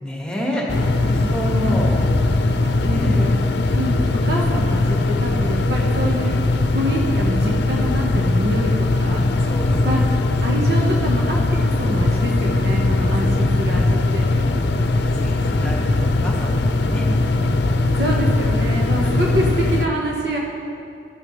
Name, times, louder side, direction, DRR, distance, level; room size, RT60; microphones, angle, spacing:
voice 1, 0.0-2.1 2.4-3.2 9.5-9.9 13.8-13.9 14.8-14.9 15.2-17.0 17.4-17.9, equal, 5° left, -3 dB, 1.6 m, -30 dB
sound 1, 0.7-19.9, left 2 dB, 85° left, 0.6 m, -19 dB
voice 2, 1.5-1.8 2.8-3.3 3.7-6.4 6.7-9.2 9.8-10.0 10.4-14.3 18.0-20.4, equal, 65° right, -2 dB, 1.3 m, -26 dB
14.5 x 12.0 x 3.2 m, 2.6 s
head